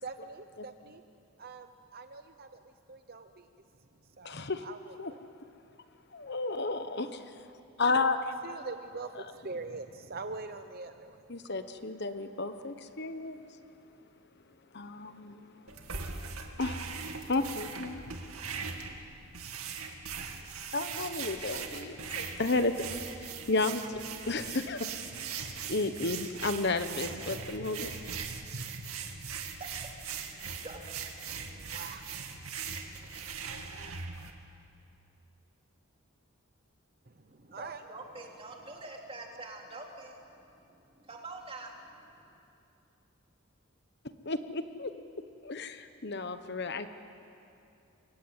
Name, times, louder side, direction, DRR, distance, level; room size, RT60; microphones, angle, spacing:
voice 1, 0.0-1.0 1.4-5.2 8.4-11.5 31.3-34.0 37.0-37.9, right 3 dB, 45° right, 8 dB, 0.8 m, -45 dB
voice 2, 4.2-4.6 5.0-5.1 6.1-7.4 7.8-8.3 11.3-13.4 14.7-15.6 16.6-16.8 17.3-18.1 20.7-24.9 25.7-27.9 44.2-44.9 45.4-46.9, left 3 dB, 50° left, 10 dB, 1.1 m, -32 dB
sound 1, 15.7-34.3, right 5 dB, 80° right, 2.4 m, -40 dB
voice 3, 29.4-29.9 30.2-30.8 37.3-42.3, right 2 dB, 25° right, 1 dB, 3.3 m, -46 dB
28.0 x 23.0 x 9.0 m, 2.7 s
head